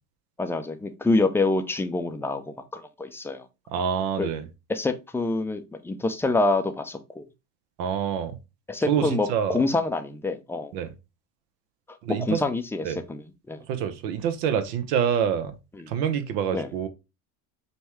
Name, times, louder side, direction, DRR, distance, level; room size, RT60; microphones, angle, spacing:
voice 1, 0.4-3.4 4.2-4.3 4.7-7.2 8.7-10.7 12.1-13.6 15.7-15.9 16.5-16.7, left 2 dB, 5° left, 0.4 m, -26 dB
voice 2, 3.7-4.4 7.8-8.4 8.9-9.6 10.7-10.9 12.0-12.4 12.8-13.0 13.7-15.5 15.9-16.9, right 8 dB, 75° right, 0.9 m, -26 dB
5.3 x 2.2 x 3.1 m
hypercardioid pair, 85°, 48 cm